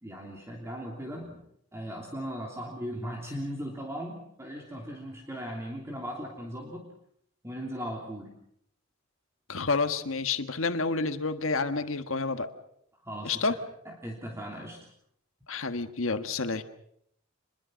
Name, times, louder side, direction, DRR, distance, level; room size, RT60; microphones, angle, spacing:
voice 1, 0.0-1.4 1.7-6.8 7.4-8.3 13.0-13.4 13.8-14.8, equal, 15° right, 0 dB, 3.0 m, -38 dB
voice 2, 9.5-12.5 13.2-13.5 15.5-16.6, left 4 dB, 75° left, 9 dB, 1.5 m, -29 dB
26.0 x 22.0 x 6.3 m, 0.72 s
head